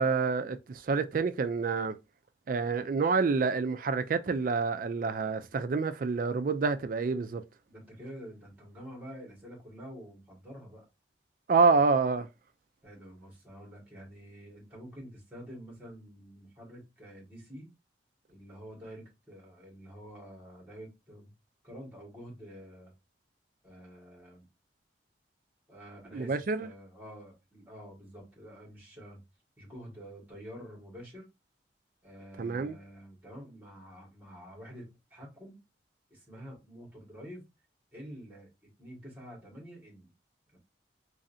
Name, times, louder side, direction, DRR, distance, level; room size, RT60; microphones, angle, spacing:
voice 1, 0.0-2.0 2.5-7.4 11.5-12.3 26.1-26.7 32.4-32.8, right 4 dB, 50° right, 0.4 m, -27 dB
voice 2, 7.7-10.9 12.8-17.7 18.3-21.3 21.6-22.9 23.6-24.5 25.7-29.2 29.6-31.3 32.0-35.6 36.1-37.4 37.9-40.1 40.5-40.6, equal, 10° right, 1.9 m, -48 dB
3.8 x 3.2 x 2.7 m
head